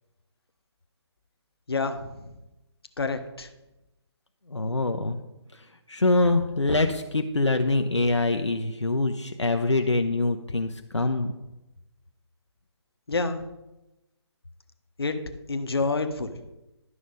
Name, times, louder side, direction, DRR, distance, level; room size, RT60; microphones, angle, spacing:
voice 1, 1.7-2.3 3.0-3.5 13.1-13.4 15.0-15.2 15.5-16.4, left 3 dB, 60° left, 7 dB, 1.0 m, -28 dB
voice 2, 4.5-5.2 5.5-11.3, left 2 dB, 80° left, 5 dB, 0.7 m, -24 dB
11.0 x 6.1 x 5.2 m, 0.97 s
figure-of-eight pair, 145°, 15 cm